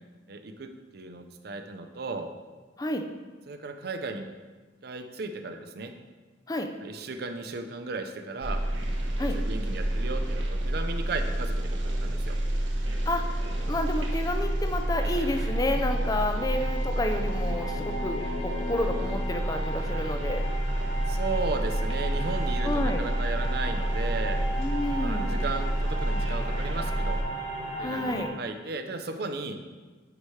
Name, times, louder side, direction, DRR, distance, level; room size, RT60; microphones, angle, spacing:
voice 1, 0.3-2.3 3.5-4.3 4.8-5.9 6.8-8.6 9.3-12.4 21.1-24.4 25.0-27.2 27.8-29.6, right 3 dB, 55° right, 6 dB, 0.5 m, -35 dB
sound 1, 8.4-27.2, right 1 dB, 90° right, 1.1 m, -29 dB
sound 2, 12.9-28.3, right 1 dB, 45° left, 1.5 m, -38 dB
voice 2, 13.1-20.4 22.6-23.0 24.6-25.4 27.8-28.3, left 1 dB, 20° left, 6 dB, 0.4 m, -30 dB
sound 3, 16.5-20.4, left 4 dB, 85° left, 1.3 m, -40 dB
9.7 x 4.9 x 3.2 m, 1.3 s
head